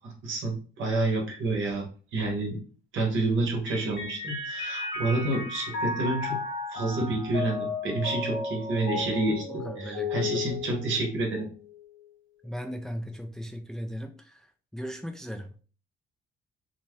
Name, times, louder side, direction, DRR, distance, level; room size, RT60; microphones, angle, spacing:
voice 1, 0.0-1.8 2.1-2.6 2.9-6.4 6.7-11.5, right 2 dB, 80° right, 0 dB, 1.2 m, -29 dB
Mallet percussion, 3.7-11.4, left 3 dB, 70° left, 1.2 m, -34 dB
voice 2, 9.3-10.6 12.4-15.5, equal, 5° left, 5 dB, 0.4 m, -38 dB
2.9 x 2.2 x 3.1 m, 0.39 s
cardioid pair, 90°, 20 cm